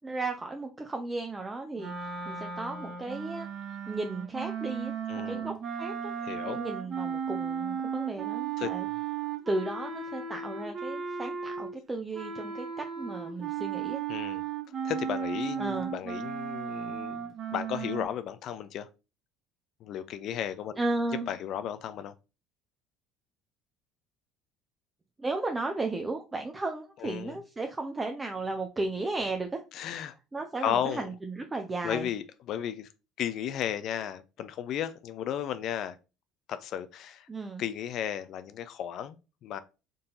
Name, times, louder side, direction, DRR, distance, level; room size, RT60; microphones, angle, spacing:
voice 1, 0.0-1.9 2.3-3.5 3.9-5.0 5.3-6.1 6.4-8.9 9.5-14.0 15.6-15.9 20.8-21.3 25.2-29.6 30.3-32.1 37.3-37.6, right 2 dB, 20° right, 0.5 m, -34 dB
sound 1, 1.8-11.8 12.1-18.0, right 7 dB, 45° right, 1.3 m, -35 dB
voice 2, 5.1-5.5 6.2-6.6 8.6-8.7 14.1-14.4 14.8-18.9 19.8-20.8 21.3-22.1 27.0-27.4 29.7-30.2 30.6-31.1 31.8-32.9 33.2-36.0 36.5-37.3 37.6-39.6, left 10 dB, 60° left, 0.4 m, -34 dB
3.8 x 2.7 x 3.8 m
supercardioid pair, 95°, 0 cm